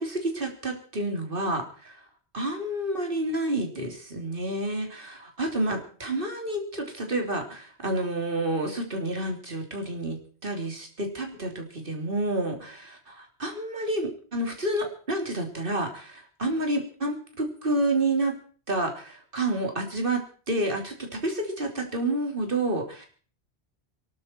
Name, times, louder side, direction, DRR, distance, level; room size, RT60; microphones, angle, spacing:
voice 1, 0.0-2.0 2.3-18.4 18.7-23.1, right 1 dB, 55° right, 3 dB, 3.4 m, -29 dB
23.5 x 12.0 x 4.5 m, 0.42 s
omnidirectional pair, 1.1 m